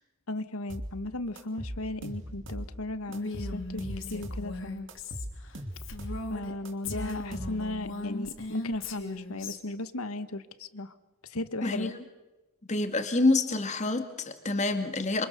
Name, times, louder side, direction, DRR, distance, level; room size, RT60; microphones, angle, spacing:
voice 1, 0.3-4.9 6.3-10.9 11.2-11.9, left 2 dB, 80° left, 12 dB, 1.5 m, -36 dB
sound 1, 0.7-0.9 1.4-2.7 3.1-4.5 4.9-6.2 6.6-7.8, equal, 55° right, 2.9 m, -39 dB
Female speech woman speaking, 3.1-6.5 6.8-9.6, left 3 dB, 60° left, 3.3 m, -38 dB
voice 2, 11.6-11.9 12.7-15.3, left 2 dB, 30° left, 7 dB, 2.2 m, -27 dB
27.0 x 26.5 x 6.9 m, 1.1 s
head